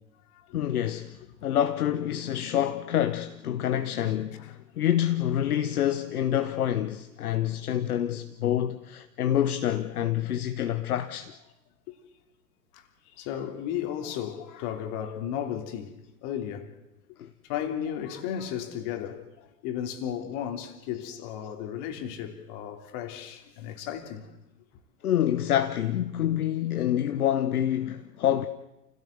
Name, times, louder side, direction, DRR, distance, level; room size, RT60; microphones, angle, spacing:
voice 1, 0.5-11.3 17.2-17.3 25.0-28.5, left 11 dB, 60° left, 1.2 m, -27 dB
voice 2, 13.2-15.9 16.2-16.7 17.5-24.3, left 9 dB, 40° left, 3.1 m, -34 dB
29.0 x 16.5 x 8.0 m
figure-of-eight pair, 105°, 49 cm